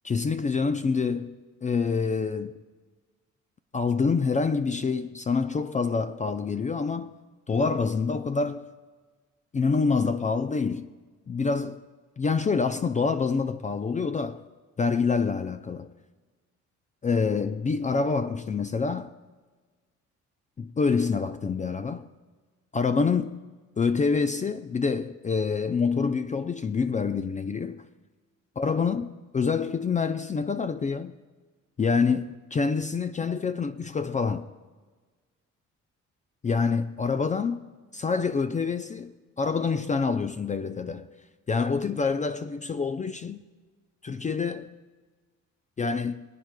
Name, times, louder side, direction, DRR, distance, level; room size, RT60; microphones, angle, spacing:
voice 1, 0.0-2.6 3.7-7.1 7.5-8.6 9.5-10.9 11.3-11.8 12.2-14.4 14.8-15.9 17.0-19.1 20.6-22.1 22.7-23.4 23.8-27.8 28.6-31.1 31.8-34.4 36.4-37.6 37.9-41.1 41.5-43.4 44.0-44.8 45.8-46.2, left 5 dB, 25° left, 0.4 m, -26 dB
25.5 x 9.2 x 2.2 m
cardioid pair, 90°, 30 cm